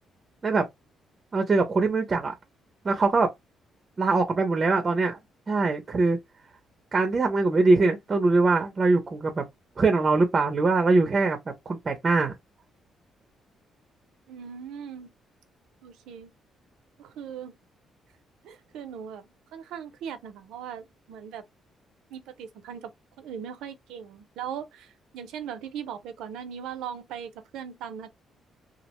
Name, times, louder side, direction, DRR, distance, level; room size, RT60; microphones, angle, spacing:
voice 1, 1.3-2.3 2.8-3.3 4.0-5.2 5.5-6.2 6.9-9.5 9.8-11.4 11.7-12.3, right 3 dB, 35° right, 0.5 m, -22 dB
voice 2, 14.3-15.1 15.8-16.3 17.0-17.5 18.4-21.4 22.1-22.9 23.2-28.1, right 8 dB, 90° right, 0.5 m, -39 dB
2.3 x 2.0 x 2.9 m
cardioid pair, 90°, 0 cm